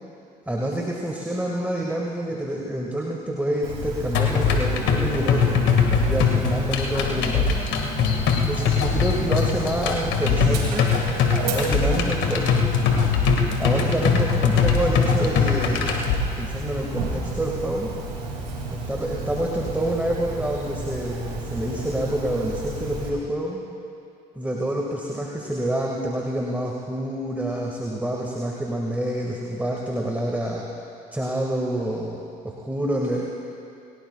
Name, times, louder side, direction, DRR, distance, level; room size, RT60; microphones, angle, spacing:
voice 1, 0.5-5.6 5.9-7.6 8.4-10.9 11.4-12.6 13.6-16.1 16.4-17.9 18.7-23.6 24.4-30.6 31.1-33.3, right 1 dB, 10° right, -2 dB, 2.0 m, -27 dB
Dog, 3.6-23.1, right 2 dB, 90° right, 2.9 m, -32 dB
sound 1, 4.1-16.1, left 6 dB, 65° left, 2.0 m, -22 dB
28.5 x 17.0 x 2.4 m, 2.5 s
hypercardioid pair, 55°, 21 cm